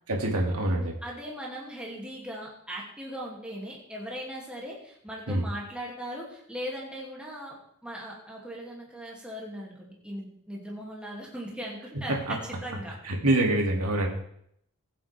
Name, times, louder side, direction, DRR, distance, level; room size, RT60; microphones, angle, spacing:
voice 1, 0.1-0.9 5.3-5.4 12.3-12.4 13.0-14.1, right 1 dB, 85° right, 0 dB, 2.5 m, -25 dB
voice 2, 1.0-13.0, equal, 5° right, -4 dB, 2.6 m, -39 dB
21.0 x 7.7 x 3.5 m, 0.71 s
head